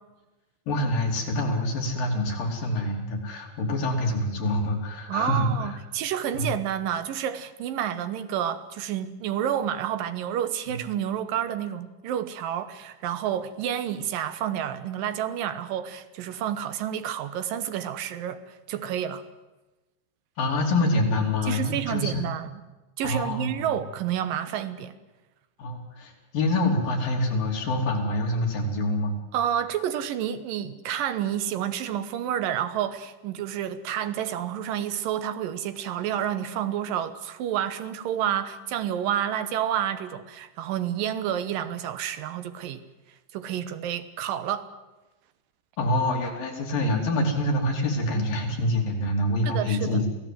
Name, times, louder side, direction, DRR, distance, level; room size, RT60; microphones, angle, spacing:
voice 1, 0.7-5.8 6.3-6.5 10.7-10.8 20.4-22.3 23.0-23.7 25.6-29.2 45.8-50.0, left 1 dB, 65° left, 4.6 m, -26 dB
voice 2, 5.1-19.2 21.4-22.6 23.0-24.9 29.3-42.8 43.3-44.7 49.5-50.0, right 10 dB, 70° right, 2.6 m, -29 dB
27.5 x 16.5 x 7.7 m
omnidirectional pair, 4.5 m